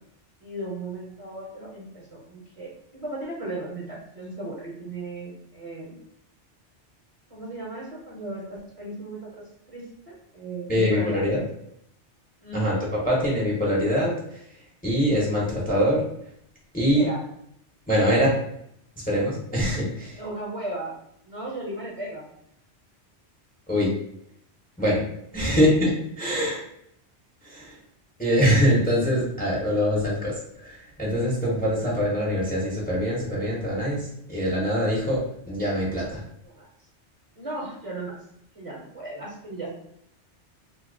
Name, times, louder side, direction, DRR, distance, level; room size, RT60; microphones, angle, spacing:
voice 1, 0.4-6.0 7.3-11.2 12.4-12.7 16.9-17.2 20.1-20.9 21.2-22.3 25.4-25.7 31.6-31.7 36.4-36.7 37.4-38.2 38.5-39.7, right 2 dB, 35° right, -4 dB, 0.9 m, -36 dB
voice 2, 10.7-11.4 12.5-12.8 13.0-16.0 16.7-17.1 17.9-18.3 19.0-20.2 23.7-23.9 24.8-25.0 25.3-25.9 26.2-26.6 27.4-27.8 28.2-36.2, equal, 10° left, -5 dB, 0.8 m, -24 dB
2.7 x 2.3 x 3.7 m, 0.73 s
omnidirectional pair, 1.2 m